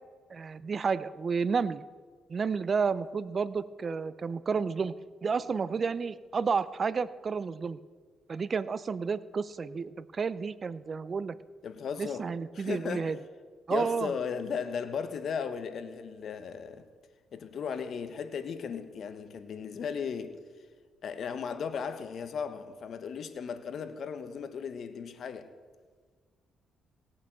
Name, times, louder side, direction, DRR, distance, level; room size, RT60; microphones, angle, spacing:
voice 1, 0.3-1.8 2.3-4.9 5.2-7.8 8.3-11.4 12.0-13.2 13.7-14.1, right 5 dB, 40° right, 0.6 m, -31 dB
voice 2, 11.6-12.3 12.5-13.2 13.7-16.9 17.3-20.4 21.0-25.5, left 6 dB, 60° left, 1.3 m, -36 dB
17.5 x 8.8 x 7.7 m
cardioid pair, 90°, 0 cm